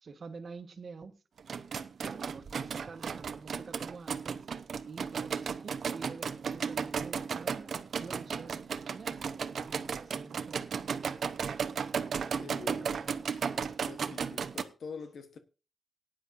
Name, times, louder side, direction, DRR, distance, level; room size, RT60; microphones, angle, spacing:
voice 1, 0.0-1.1 2.0-4.5 4.9-10.6 12.7-13.2, right 4 dB, 55° right, 1.4 m, -48 dB
sound 1, 1.4-14.6, right 6 dB, 75° right, 0.8 m, -35 dB
voice 2, 12.4-15.4, left 5 dB, 85° left, 1.1 m, -46 dB
18.0 x 10.0 x 2.6 m
wide cardioid pair, 150°, 0 cm